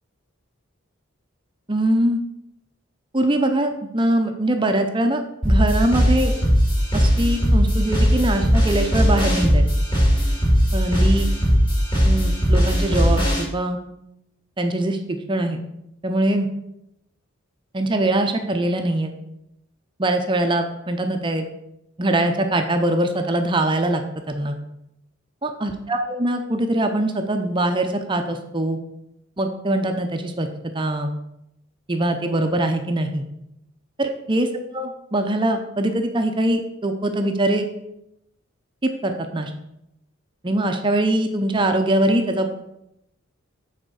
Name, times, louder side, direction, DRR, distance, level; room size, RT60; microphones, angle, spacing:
voice 1, 1.7-2.2 3.1-6.3 6.9-9.6 10.7-11.3 12.0-13.8 14.6-15.6 16.0-16.5 17.7-19.1 20.0-21.4 22.0-24.0 24.3-24.6 25.4-28.8 29.4-30.5 30.7-31.1 31.9-33.2 34.0-34.5 34.7-37.7 38.8-39.5 40.4-42.5, right 1 dB, 25° right, 6 dB, 0.6 m, -22 dB
sound 1, 5.4-13.4, equal, 25° left, 2.4 m, -18 dB
7.7 x 4.2 x 6.3 m, 0.83 s
head